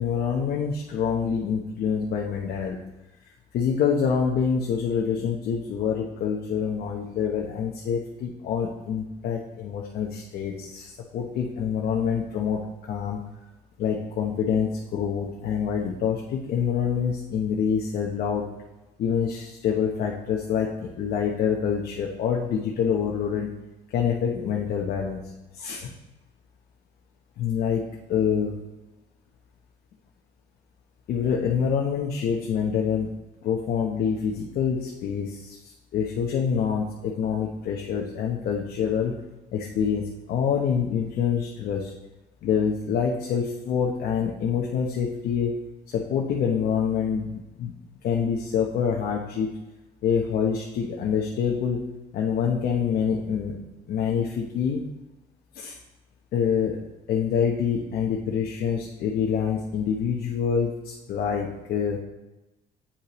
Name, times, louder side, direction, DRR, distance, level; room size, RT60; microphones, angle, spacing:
voice 1, 0.0-2.8 3.5-12.6 12.9-13.2 13.8-18.5 19.0-23.5 23.9-25.2 25.5-25.9 27.4-28.5 31.1-33.1 33.4-39.2 39.5-41.9 42.4-45.5 45.9-47.7 48.0-49.6 50.0-51.9 52.1-53.6 53.9-54.8 55.5-55.8 56.3-56.8 57.1-62.0, left 7 dB, 65° left, -1 dB, 0.9 m, -26 dB
8.4 x 5.4 x 3.1 m, 1.0 s
cardioid pair, 110°, 17 cm